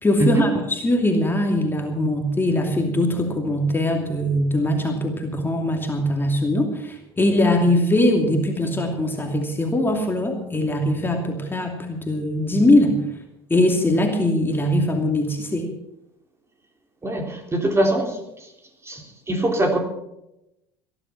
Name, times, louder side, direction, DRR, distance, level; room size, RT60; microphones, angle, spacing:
voice 1, 0.0-13.0 13.5-15.7, left 1 dB, 15° left, 2 dB, 2.7 m, -21 dB
voice 2, 17.0-18.2 18.8-19.8, right 1 dB, 20° right, 3 dB, 3.5 m, -22 dB
18.0 x 11.0 x 5.8 m, 0.87 s
hypercardioid pair, 75°, 13 cm